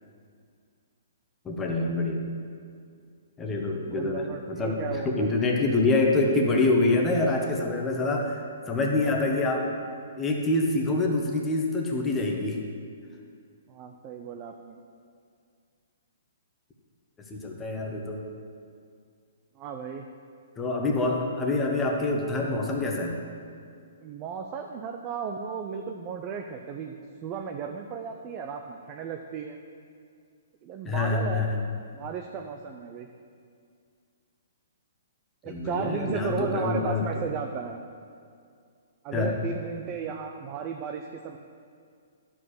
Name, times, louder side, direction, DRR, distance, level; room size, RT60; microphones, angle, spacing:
voice 1, 1.4-2.2 3.4-9.7 10.2-12.6 17.3-18.2 20.6-23.2 30.8-31.6 35.4-37.0 39.1-39.3, left 2 dB, 10° left, 0 dB, 1.1 m, -26 dB
voice 2, 3.8-5.3 13.7-14.8 19.6-20.1 24.0-27.0 27.2-29.6 30.6-31.5 31.9-33.1 35.4-37.8 39.0-41.4, right 6 dB, 25° right, 4 dB, 0.5 m, -35 dB
12.0 x 5.0 x 6.4 m, 2.2 s
hypercardioid pair, 155°, 0 cm